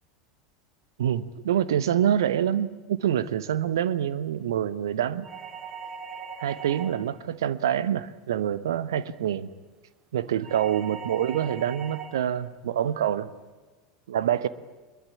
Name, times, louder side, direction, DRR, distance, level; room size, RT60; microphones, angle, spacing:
voice 1, 1.0-5.3 6.4-9.5 10.1-13.3 14.1-14.5, right 10 dB, 65° right, 1.1 m, -26 dB
sound 1, 5.2-7.2 10.4-12.2, right 6 dB, 35° right, 2.7 m, -40 dB
23.0 x 22.5 x 8.5 m
figure-of-eight pair, 80°, 2 cm